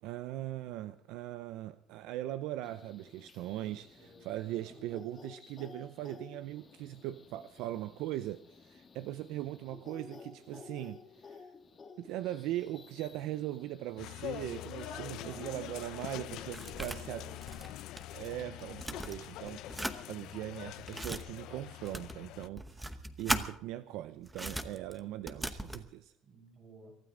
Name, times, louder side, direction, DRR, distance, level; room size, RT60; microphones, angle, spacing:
voice 1, 0.0-11.5 12.0-17.3 18.1-26.1, right 14 dB, 70° right, 0.5 m, -40 dB
sound 1, 2.6-15.9, left 5 dB, 25° left, 1.4 m, -55 dB
voice 2, 3.6-5.0 14.9-15.7 16.4-17.8 26.2-27.0, right 4 dB, 35° right, 6.3 m, -55 dB
sound 2, 14.0-22.5, left 15 dB, 65° left, 0.5 m, -44 dB
sound 3, 15.6-18.3 18.6-20.0 20.6-21.2 21.8-23.5 24.2-25.9, right 1 dB, 5° right, 0.9 m, -39 dB
24.0 x 12.5 x 3.8 m
cardioid pair, 140°, 0 cm